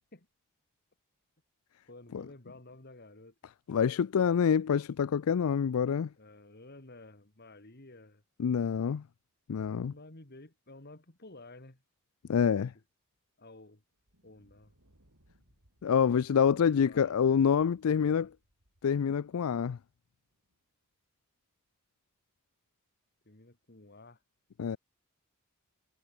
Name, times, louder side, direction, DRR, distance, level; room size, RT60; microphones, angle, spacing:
voice 1, 1.9-3.3 6.2-8.2 9.7-11.8 12.3-12.6 13.4-13.8 14.2-14.7 15.9-16.3 16.6-17.2 17.8-18.3 23.2-24.2, left 2 dB, 45° left, 2.5 m, -52 dB
voice 2, 3.7-6.1 8.4-9.0 9.5-9.9 12.3-12.7 15.8-18.3 18.8-19.8 24.6-24.8, left 7 dB, 75° left, 0.4 m, -26 dB
Thunder, 13.9-20.6, equal, 75° right, 6.0 m, -69 dB
head